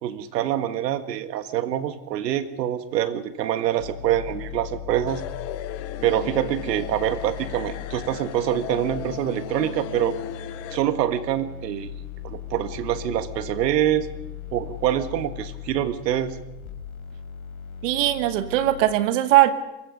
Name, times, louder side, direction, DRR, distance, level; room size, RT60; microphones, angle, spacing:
voice 1, 0.0-5.2 6.0-10.2 10.7-11.9 12.2-14.1 14.5-16.4, right 11 dB, 80° right, 12 dB, 1.7 m, -25 dB
sound 1, 3.8-18.9, left 9 dB, 65° left, 4.2 m, -38 dB
sound 2, 5.1-10.8, left 10 dB, 30° left, 1.1 m, -36 dB
voice 2, 17.8-19.5, right 14 dB, 50° right, 12 dB, 1.5 m, -20 dB
23.5 x 21.0 x 5.4 m, 0.96 s
supercardioid pair, 165°, 49 cm